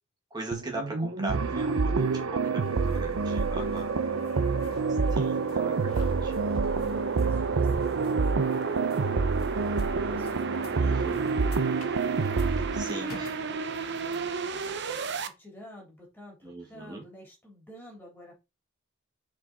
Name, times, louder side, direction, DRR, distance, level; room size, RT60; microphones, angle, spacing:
voice 1, 0.3-3.9 5.2-6.4 10.7-11.5 12.5-13.3 16.4-17.0, right 2 dB, 20° right, 1.8 m, -40 dB
sound 1, 0.5-15.3, right 4 dB, 55° right, 0.8 m, -34 dB
sound 2, 1.3-12.8, right 4 dB, 85° right, 0.6 m, -28 dB
voice 2, 2.1-3.0 4.6-5.6 6.8-10.5 12.9-13.1 13.5-18.3, left 1 dB, 10° left, 3.4 m, -51 dB
sound 3, 2.6-14.7, left 3 dB, 85° left, 1.3 m, -49 dB
6.3 x 4.9 x 4.1 m
head